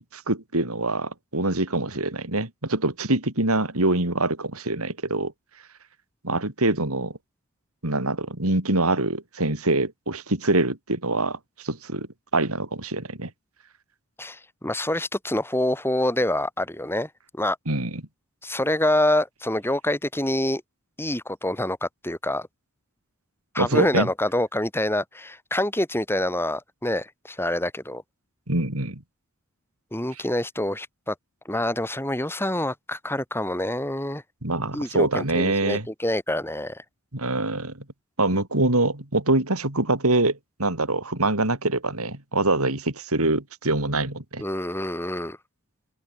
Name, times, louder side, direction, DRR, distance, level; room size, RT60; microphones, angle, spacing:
voice 1, 0.0-5.3 6.2-7.1 7.8-12.1 12.3-13.3 17.7-18.0 23.6-24.1 28.5-29.0 34.4-35.9 37.1-37.7 38.2-44.4, right 2 dB, 75° right, 4.2 m, -24 dB
voice 2, 14.2-17.6 18.4-20.6 21.0-22.5 23.5-28.0 29.9-31.1 31.4-34.2 34.7-36.8 44.4-45.4, left 1 dB, 10° left, 4.8 m, -26 dB
open air
head